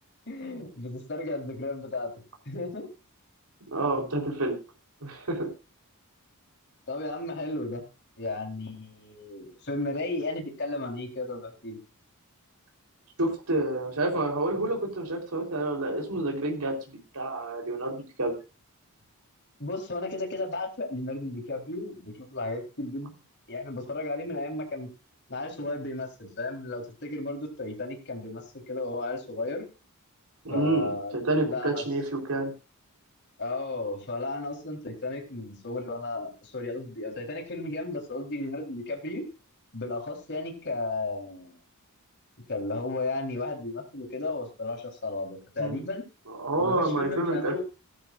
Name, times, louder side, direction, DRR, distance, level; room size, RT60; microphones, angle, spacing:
voice 1, 0.3-2.1 2.5-2.9 6.9-7.8 8.2-11.8 19.6-23.1 23.5-24.9 25.3-29.7 30.5-31.8 33.4-39.2 39.7-41.6 42.5-46.0 46.6-47.6, left 2 dB, 50° left, 3 dB, 4.1 m, -34 dB
voice 2, 3.7-4.5 5.0-5.5 13.2-16.8 17.1-18.3 30.4-32.5 45.6-45.8 46.3-47.6, right 2 dB, 85° right, 1 dB, 4.1 m, -28 dB
17.5 x 12.5 x 2.6 m, 0.30 s
head